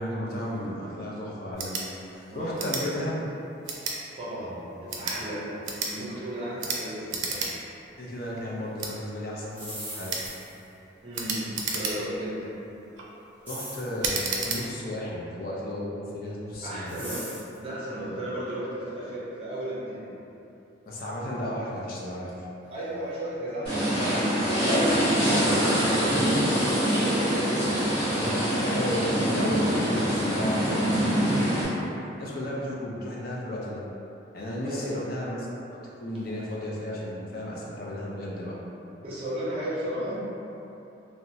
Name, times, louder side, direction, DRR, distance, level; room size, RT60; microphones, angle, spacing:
voice 1, 0.0-3.3 8.0-10.2 13.5-17.0 20.9-22.5 28.2-31.7 32.2-33.8 34.3-38.6, left 1 dB, 50° left, -4 dB, 0.4 m, -34 dB
sound 1, 1.5-1.9 2.6-2.8 3.6-4.0 4.8-5.2 5.6-5.9 6.6-6.8 7.1-7.5 7.9-8.0 8.8-8.9 10.1-10.3 11.1-12.2 12.8-13.1 14.0-14.6, right 4 dB, 80° right, 0.4 m, -31 dB
voice 2, 2.3-2.7 4.2-7.4 11.0-12.5 16.6-20.1 22.7-27.2 34.6-34.9 36.2-36.4 39.0-40.2, right 1 dB, 30° right, -9 dB, 0.6 m, -35 dB
sound 2, 9.5-10.7 13.5-14.0 16.9-17.6, equal, 10° right, 1.1 m, -39 dB
sound 3, 23.6-31.6, equal, 30° left, 1.2 m, -24 dB
2.8 x 2.1 x 2.6 m, 2.9 s
head